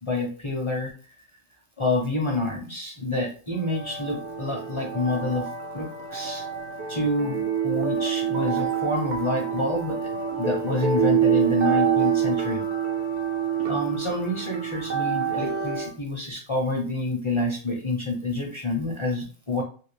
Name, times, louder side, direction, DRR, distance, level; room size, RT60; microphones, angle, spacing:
voice 1, 0.0-0.9 1.8-5.5 5.7-6.4 6.9-10.0 10.3-12.7 13.7-19.6, left 2 dB, 30° left, -1 dB, 0.6 m, -28 dB
sound 1, 3.6-15.9, right 8 dB, 65° right, 1.0 m, -27 dB
2.8 x 2.7 x 3.2 m, 0.39 s
omnidirectional pair, 1.4 m